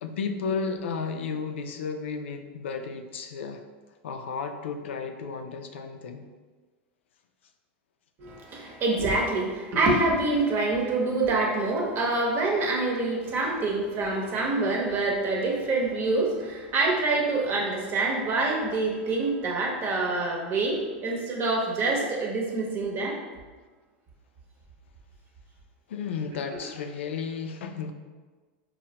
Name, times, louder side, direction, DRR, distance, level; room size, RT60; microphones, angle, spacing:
voice 1, 0.0-3.6 4.0-6.3 25.9-27.9, left 5 dB, 85° left, 6 dB, 0.3 m, -33 dB
voice 2, 8.2-23.2, right 3 dB, 40° right, -1 dB, 0.8 m, -26 dB
4.4 x 2.1 x 2.8 m, 1.3 s
hypercardioid pair, 120°, 6 cm